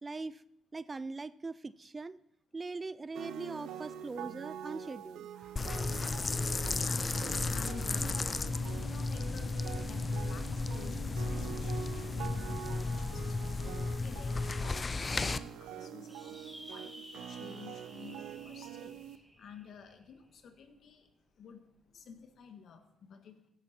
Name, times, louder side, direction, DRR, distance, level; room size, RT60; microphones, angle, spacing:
voice 1, 0.0-0.4 0.7-2.2 2.5-5.7, right 3 dB, 25° right, 18 dB, 0.4 m, -41 dB
sound 1, 3.2-19.2, right 9 dB, 85° right, 0.8 m, -45 dB
sound 2, 5.6-15.4, left 3 dB, 30° left, 0.5 m, -34 dB
voice 2, 6.8-7.1 7.5-21.1 21.4-21.6 21.9-23.4, left 6 dB, 65° left, 7 dB, 1.7 m, -52 dB
sound 3, 16.1-20.8, equal, ahead, 2.2 m, -53 dB
16.5 x 11.0 x 4.4 m, 0.78 s
cardioid pair, 90°, 0 cm